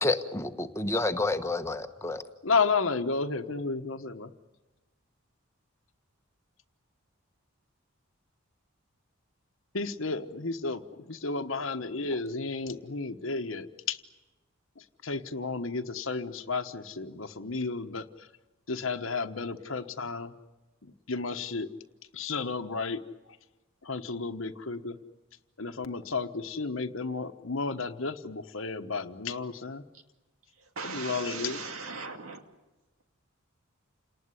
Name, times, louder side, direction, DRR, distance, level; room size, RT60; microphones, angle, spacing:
voice 1, 0.0-2.2, left 2 dB, 15° left, 8 dB, 1.2 m, -29 dB
voice 2, 2.4-4.3 9.7-10.8 11.1-14.0 15.0-18.0 18.7-20.3 21.1-21.7 22.1-23.0 23.8-25.0 25.6-29.8 30.8-31.6, left 4 dB, 70° left, 6 dB, 1.2 m, -32 dB
voice 3, 30.6-32.4, right 4 dB, 90° right, 6 dB, 2.3 m, -39 dB
29.0 x 19.0 x 9.8 m, 1.1 s
head